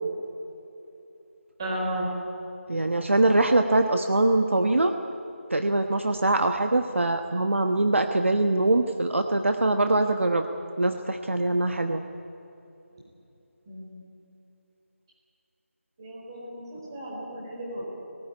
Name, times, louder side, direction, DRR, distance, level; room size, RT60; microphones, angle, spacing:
voice 1, 1.6-2.1 13.7-14.0 16.0-17.8, right 1 dB, 20° right, -3 dB, 4.3 m, -34 dB
voice 2, 2.7-4.9 5.5-10.5 10.8-12.0, right 2 dB, 60° right, 7 dB, 1.2 m, -23 dB
19.0 x 17.5 x 9.8 m, 2.9 s
figure-of-eight pair, 170°, 8 cm